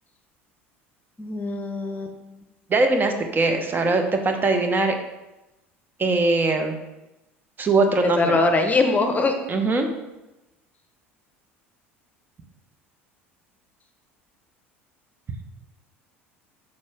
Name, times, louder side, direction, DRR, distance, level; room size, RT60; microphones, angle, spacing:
voice 1, 1.2-2.1 8.2-9.3, left 3 dB, 25° left, 5 dB, 1.0 m, -22 dB
voice 2, 2.7-4.9 6.0-6.7 7.6-8.4 9.5-9.9, right 3 dB, 30° right, 5 dB, 1.1 m, -21 dB
6.6 x 6.4 x 3.6 m, 0.98 s
hypercardioid pair, 70°, 7 cm